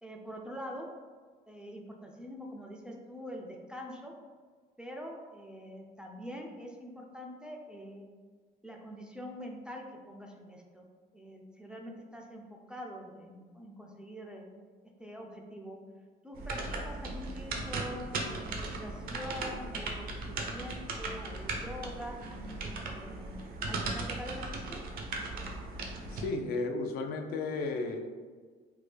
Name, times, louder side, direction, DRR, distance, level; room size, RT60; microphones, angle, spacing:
voice 1, 0.0-0.9 1.5-4.1 4.8-8.1 8.6-10.9 11.1-12.4 12.7-14.5 15.0-15.8 16.2-22.2 22.9-24.8, equal, 5° right, 0 dB, 0.3 m, -44 dB
sound 1, 16.3-26.3, right 2 dB, 60° right, 0.6 m, -37 dB
voice 2, 26.1-28.1, left 3 dB, 65° left, 4 dB, 0.4 m, -34 dB
3.4 x 2.1 x 3.2 m, 1.5 s
cardioid pair, 110°, 17 cm